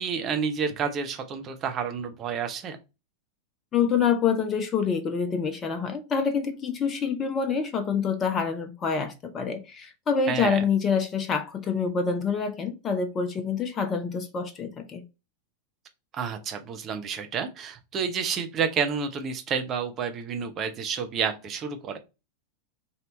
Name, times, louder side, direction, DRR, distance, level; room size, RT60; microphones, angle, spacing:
voice 1, 0.0-2.8 10.3-10.6 16.1-22.0, right 6 dB, 30° right, 0.8 m, -30 dB
voice 2, 3.7-15.0, left 6 dB, 25° left, 0.6 m, -26 dB
3.3 x 2.7 x 4.0 m
figure-of-eight pair, 90°, 0 cm